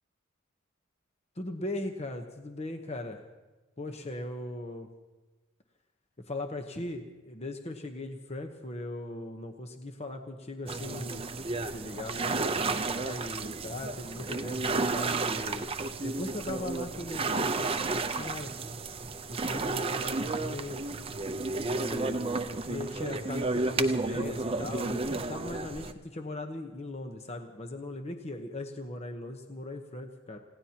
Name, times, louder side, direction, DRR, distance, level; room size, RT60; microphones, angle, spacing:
voice 1, 1.4-3.2 3.8-4.9 6.3-11.2 11.7-15.7 16.0-18.5 19.3-20.8 21.6-30.4, left 1 dB, 35° left, 5 dB, 1.0 m, -39 dB
sound 1, 10.7-25.9, right 3 dB, 30° right, 0.7 m, -32 dB
29.0 x 17.0 x 2.9 m, 1.2 s
head